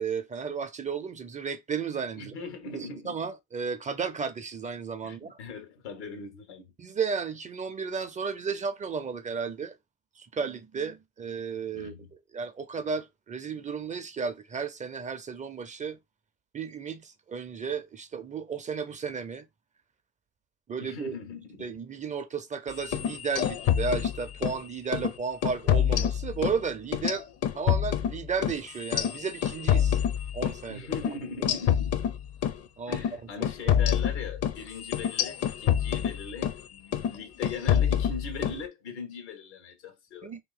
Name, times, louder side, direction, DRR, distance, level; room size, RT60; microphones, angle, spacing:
voice 1, 0.0-2.3 2.7-5.4 6.8-9.8 10.2-11.9 12.3-16.0 16.5-19.5 20.7-21.2 21.6-27.3 27.5-30.0 30.3-30.9 32.8-33.0 33.7-33.8 40.2-40.4, right 5 dB, 25° right, 0.5 m, -33 dB
voice 2, 2.2-3.2 5.0-6.7 11.7-12.1 20.8-21.7 30.7-32.1 32.9-40.3, left 4 dB, 90° left, 1.2 m, -40 dB
sound 1, 22.8-24.6 24.9-25.1 25.4-26.6 26.9-30.6 30.9-31.1 31.4-32.6 32.9-33.1 33.4-36.6 36.9-37.2 37.4-38.6, left 9 dB, 50° left, 0.6 m, -26 dB
2.9 x 2.6 x 3.9 m
hypercardioid pair, 85°, 33 cm